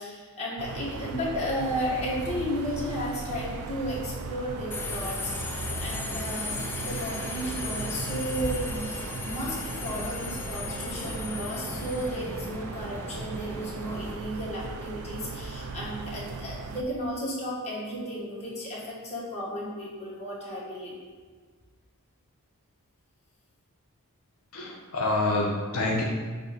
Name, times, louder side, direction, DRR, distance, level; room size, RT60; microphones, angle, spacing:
voice 1, 0.0-21.0, equal, 30° left, -7 dB, 1.6 m, -34 dB
sound 1, 0.6-16.8, right 4 dB, 80° right, 0.4 m, -38 dB
Subway metro underground, 4.7-14.1, left 3 dB, 10° left, 0.5 m, -36 dB
voice 2, 24.5-26.0, left 2 dB, 75° left, -3 dB, 0.7 m, -27 dB
6.9 x 2.7 x 5.1 m, 1.5 s
head